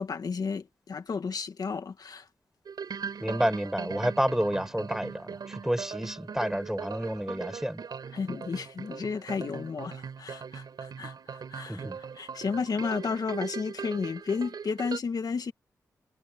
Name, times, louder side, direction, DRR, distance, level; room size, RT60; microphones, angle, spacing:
voice 1, 0.0-2.3 8.1-15.5, left 5 dB, 65° left, 1.9 m, -33 dB
sound 1, 2.6-15.0, right 6 dB, 70° right, 4.9 m, -40 dB
voice 2, 3.2-7.8 11.7-12.0, equal, 5° right, 5.9 m, -29 dB
cardioid pair, 45°, 7 cm